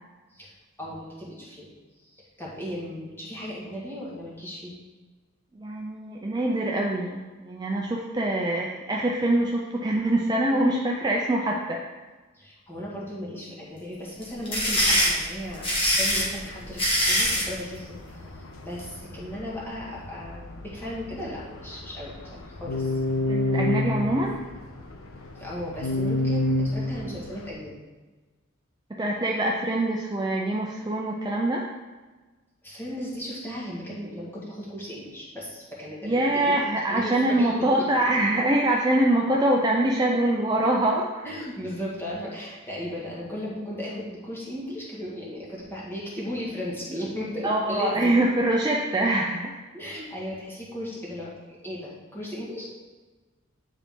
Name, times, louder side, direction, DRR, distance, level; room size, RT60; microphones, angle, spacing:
voice 1, 0.3-1.7 2.1-4.7 12.3-18.2 18.6-23.0 25.4-27.8 32.6-36.6 36.9-37.7 41.2-48.2 49.7-52.7, equal, 10° left, -7 dB, 1.7 m, -36 dB
voice 2, 5.6-11.8 23.3-24.4 28.9-31.7 36.0-41.2 47.4-49.5, right 1 dB, 20° right, -1 dB, 0.5 m, -24 dB
sound 1, 14.2-17.5, equal, 25° left, 1.6 m, -23 dB
sound 2, 16.0-27.5, left 2 dB, 90° left, 0.8 m, -31 dB
9.8 x 4.1 x 3.6 m, 1.3 s
head